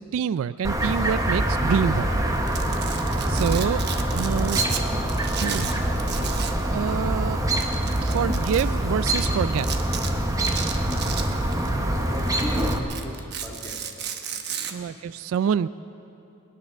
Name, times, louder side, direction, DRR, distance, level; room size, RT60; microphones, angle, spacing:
voice 1, 0.0-2.1 3.3-3.8 4.1-4.6 5.4-5.7 6.7-7.4 8.0-9.7 14.7-15.7, right 7 dB, 70° right, 17 dB, 0.3 m, -26 dB
Chirp tweet, 0.6-12.8, right 1 dB, 15° right, 1.0 m, -25 dB
Domestic sounds home sounds, 2.4-4.8 5.1-6.6 6.9-7.0 7.5-8.6 9.1-9.3 9.6-10.1 10.4-11.7 12.1-14.7, right 8 dB, 55° right, 0.9 m, -33 dB
voice 2, 12.1-13.9 14.5-15.0, left 1 dB, 10° left, -2 dB, 1.8 m, -37 dB
21.0 x 10.5 x 6.1 m, 2.9 s
head